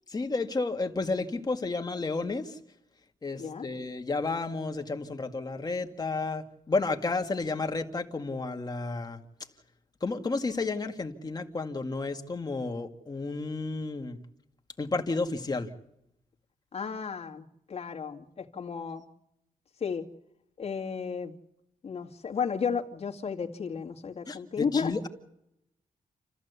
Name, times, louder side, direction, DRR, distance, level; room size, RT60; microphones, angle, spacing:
voice 1, 0.1-2.6 3.2-9.2 10.0-14.2 14.8-15.7 24.3-25.1, left 3 dB, 25° left, 5 dB, 1.9 m, -32 dB
voice 2, 16.7-19.0 19.8-20.1 20.6-21.3 21.8-24.9, left 6 dB, 45° left, 1 dB, 2.3 m, -33 dB
29.0 x 14.5 x 8.2 m, 0.80 s
wide cardioid pair, 145°, 15 cm